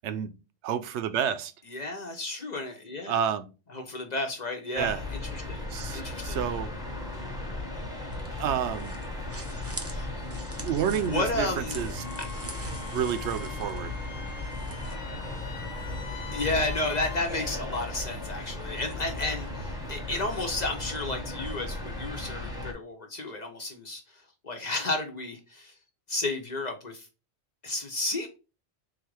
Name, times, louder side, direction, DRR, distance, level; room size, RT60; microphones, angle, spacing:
voice 1, 0.6-1.5 3.1-3.5 4.8-5.0 5.7-6.7 8.4-8.9 10.6-12.0 12.8-13.9, right 9 dB, 80° right, 0.9 m, -30 dB
voice 2, 1.7-3.2 3.7-5.6 5.9-6.4 9.8-10.1 11.0-11.8 16.3-24.0 24.4-25.7 26.1-27.1 27.6-28.3, left 2 dB, 45° left, 0.7 m, -32 dB
sound 1, 4.8-22.7, left 2 dB, 5° right, 1.0 m, -36 dB
sound 2, 7.8-15.0, right 2 dB, 20° right, 0.4 m, -45 dB
Wind instrument woodwind instrument, 12.0-17.2, left 5 dB, 85° left, 1.0 m, -44 dB
3.9 x 2.5 x 4.6 m
omnidirectional pair, 1.1 m